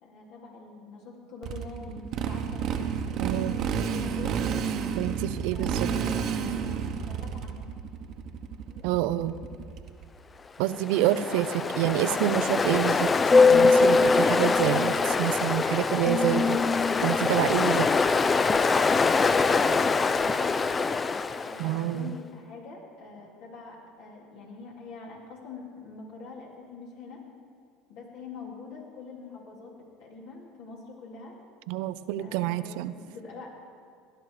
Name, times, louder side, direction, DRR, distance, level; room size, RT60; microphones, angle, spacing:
voice 1, 0.0-4.4 4.9-5.0 5.5-7.7 8.6-9.0 11.3-12.2 19.8-20.5 21.4-27.2 27.9-29.7 30.0-31.3 32.2-33.5, left 4 dB, 70° left, -2 dB, 3.3 m, -45 dB
Motorcycle, 1.4-10.1, right 7 dB, 55° right, 1.0 m, -31 dB
voice 2, 3.2-3.6 5.0-5.9 8.8-9.4 10.6-11.5 11.8-13.1 13.5-16.6 17.0-17.9 21.6-22.1 31.7-32.9, right 14 dB, 75° right, 14 dB, 0.5 m, -27 dB
Ocean, 10.7-21.8, left 4 dB, 25° left, 0.5 m, -23 dB
17.5 x 11.0 x 4.9 m, 2.2 s
supercardioid pair, 95°, 0 cm